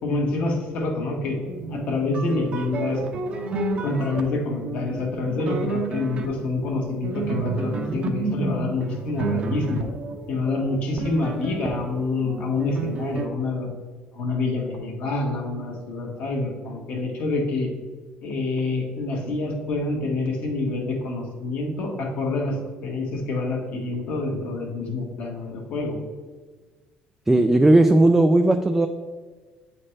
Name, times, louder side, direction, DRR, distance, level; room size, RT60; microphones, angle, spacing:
voice 1, 0.0-1.4 1.7-3.0 3.8-9.9 10.3-13.7 14.1-17.7 18.2-22.6 22.8-26.0, left 3 dB, 60° left, 0 dB, 1.6 m, -27 dB
sound 1, 1.4-13.3, right 3 dB, 40° right, 0.7 m, -31 dB
voice 2, 27.3-28.9, right 2 dB, 10° right, 5 dB, 0.3 m, -16 dB
8.6 x 4.2 x 3.2 m, 1.4 s
cardioid pair, 130°, 3 cm